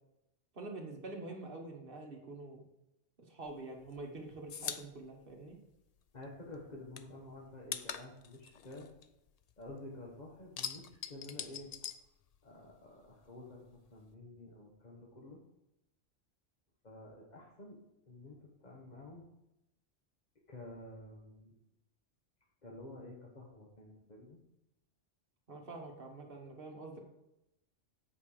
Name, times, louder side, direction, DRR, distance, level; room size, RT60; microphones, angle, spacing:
voice 1, 0.5-2.6 3.3-5.5 25.5-27.0, right 2 dB, 50° right, 1 dB, 1.5 m, -46 dB
sound 1, 3.5-6.3 6.5-9.8 10.1-12.8 13.0-14.1, left 7 dB, 75° left, 0.3 m, -44 dB
voice 2, 6.1-8.9 9.6-11.7 12.4-15.4 16.8-17.8 18.1-19.3 20.5-21.5 22.6-24.4, left 2 dB, 40° left, -3 dB, 1.2 m, -50 dB
8.3 x 5.2 x 4.9 m, 0.87 s
omnidirectional pair, 1.3 m